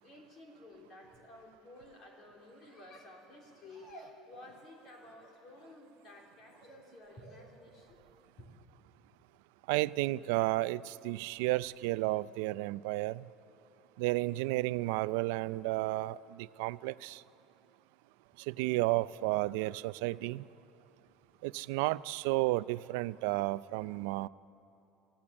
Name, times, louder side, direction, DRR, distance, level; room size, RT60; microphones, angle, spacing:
voice 1, 0.0-8.0 8.4-8.5, left 1 dB, 35° left, 0 dB, 3.6 m, -53 dB
voice 2, 9.7-13.3 14.0-17.2 18.4-20.5 21.4-24.3, right 19 dB, 80° right, 17 dB, 0.4 m, -32 dB
25.5 x 16.0 x 8.7 m, 2.9 s
cardioid pair, 170°, 0 cm